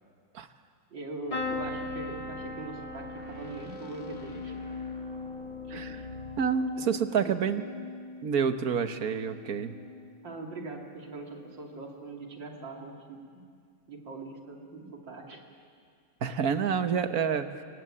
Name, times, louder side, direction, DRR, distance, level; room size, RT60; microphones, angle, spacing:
voice 1, 0.9-4.5 5.7-5.8 10.2-13.4 13.9-15.4 16.5-16.7, right 3 dB, 85° right, 1 dB, 3.4 m, -42 dB
sound 1, 1.3-6.6, left 1 dB, 40° left, 1.9 m, -48 dB
sound 2, 1.3-9.1 9.6-10.1 11.4-11.6 11.8-11.9, left 3 dB, 20° left, 2.4 m, -39 dB
voice 2, 5.7-6.0 6.4-7.6 8.2-9.8 16.2-17.5, right 7 dB, 55° right, 8 dB, 1.6 m, -28 dB
25.0 x 23.0 x 9.9 m, 2.2 s
omnidirectional pair, 2.0 m